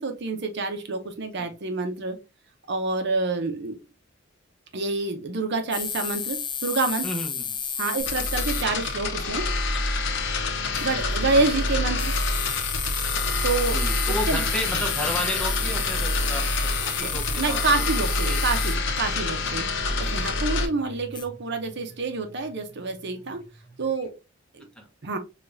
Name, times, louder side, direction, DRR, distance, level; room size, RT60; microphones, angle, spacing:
voice 1, 0.0-2.2 2.7-3.8 4.7-7.1 7.8-9.5 10.8-12.1 13.4-13.8 14.3-14.5 14.7-14.8 17.0-19.7 20.0-23.4 23.8-24.1 24.5-24.7 25.0-25.2, right 3 dB, 60° right, 0.7 m, -27 dB
sound 1, 5.7-8.6 10.7-10.9 12.0-18.8 21.1-21.2, left 7 dB, 25° left, 0.5 m, -32 dB
voice 2, 7.0-7.6 13.7-17.9 18.3-18.6 20.0-20.2 24.7-24.9, equal, 5° left, 0.8 m, -33 dB
sound 2, 8.0-20.7, left 2 dB, 65° left, 0.8 m, -27 dB
sound 3, 10.2-24.1, right 2 dB, 20° right, 1.7 m, -44 dB
5.0 x 2.4 x 2.6 m
head